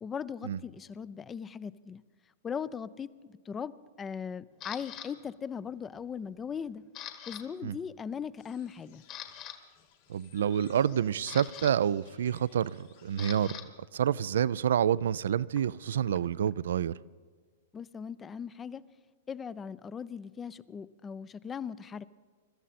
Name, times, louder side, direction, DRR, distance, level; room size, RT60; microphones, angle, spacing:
voice 1, 0.0-2.0 2.4-6.8 7.3-9.0 17.7-18.8 19.3-22.0, left 7 dB, 20° left, 0.5 m, -39 dB
Camera, 4.6-5.1 5.7-6.0 6.3-7.4 7.7-7.9 8.4-8.5 8.9-9.6 10.8-13.6 13.9-16.5, left 10 dB, 40° left, 1.6 m, -45 dB
sound 1, 8.4-13.5, left 10 dB, 60° left, 1.8 m, -61 dB
voice 2, 10.1-16.9, right 9 dB, 70° right, 0.4 m, -28 dB
24.5 x 13.0 x 4.2 m
hypercardioid pair, 110°, 0 cm